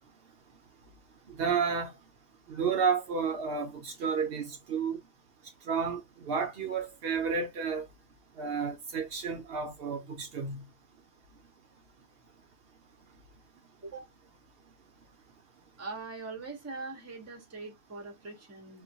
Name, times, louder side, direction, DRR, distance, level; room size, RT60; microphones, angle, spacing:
voice 1, 1.3-1.9 2.5-5.0 5.7-6.0 6.3-7.9 8.4-10.6, right 6 dB, 65° right, 0.7 m, -31 dB
voice 2, 15.8-18.8, right 3 dB, 15° right, 0.6 m, -42 dB
2.3 x 2.2 x 2.6 m
omnidirectional pair, 1.1 m